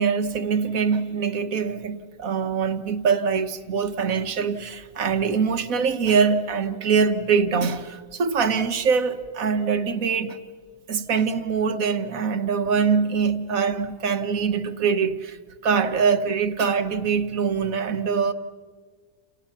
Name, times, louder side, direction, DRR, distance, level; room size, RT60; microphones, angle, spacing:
voice 1, 0.0-10.4 10.9-15.4 15.6-18.3, right 6 dB, 75° right, 1.6 m, -23 dB
30.0 x 29.5 x 5.8 m
omnidirectional pair, 1.5 m